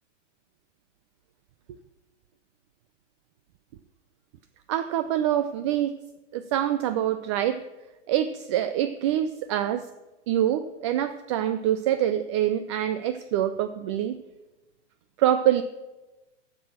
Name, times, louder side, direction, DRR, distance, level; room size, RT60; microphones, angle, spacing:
voice 1, 4.7-6.0 6.3-7.6 8.1-9.9 10.3-14.2 15.2-15.6, right 11 dB, 25° right, 11 dB, 0.4 m, -25 dB
10.0 x 7.5 x 7.2 m, 1.1 s
hypercardioid pair, 120°, 37 cm